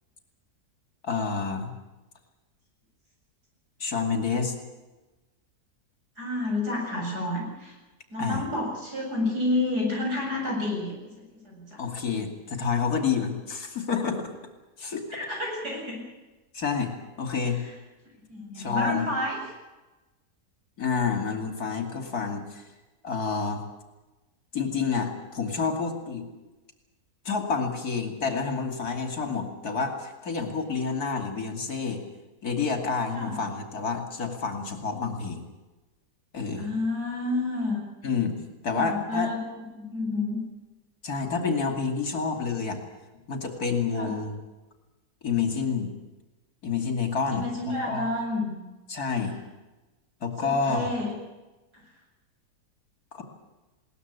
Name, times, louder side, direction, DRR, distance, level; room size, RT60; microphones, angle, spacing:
voice 1, 1.0-1.7 3.8-4.5 8.2-8.5 11.8-14.3 14.8-15.2 16.5-16.9 17.2-17.6 18.6-19.1 20.8-22.6 23.0-23.6 24.5-26.2 27.2-32.0 32.4-35.4 36.3-36.7 38.0-38.4 38.6-39.3 41.0-42.8 43.3-44.4 45.2-45.9 46.6-48.1 48.9-49.4 50.2-50.9 53.1-53.2, left 5 dB, 65° left, 5 dB, 3.1 m, -28 dB
voice 2, 6.2-7.7 8.1-11.8 15.1-16.0 17.6-17.7 18.3-19.4 33.1-33.4 36.6-37.8 38.7-40.4 43.9-44.2 47.3-48.5 50.4-51.1, left 2 dB, 75° right, -1 dB, 8.3 m, -30 dB
21.0 x 19.0 x 8.3 m, 1.1 s
omnidirectional pair, 1.7 m